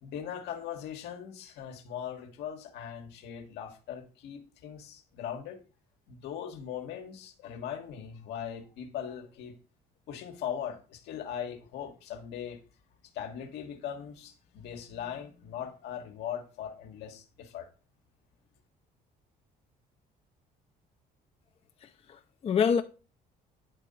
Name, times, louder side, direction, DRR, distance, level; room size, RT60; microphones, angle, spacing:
voice 1, 0.0-5.6 6.1-9.6 10.1-12.6 13.1-17.7, left 9 dB, 80° left, 1.4 m, -40 dB
voice 2, 21.8-22.8, left 7 dB, 35° left, 0.5 m, -27 dB
9.8 x 3.7 x 5.5 m
cardioid pair, 110°, 17 cm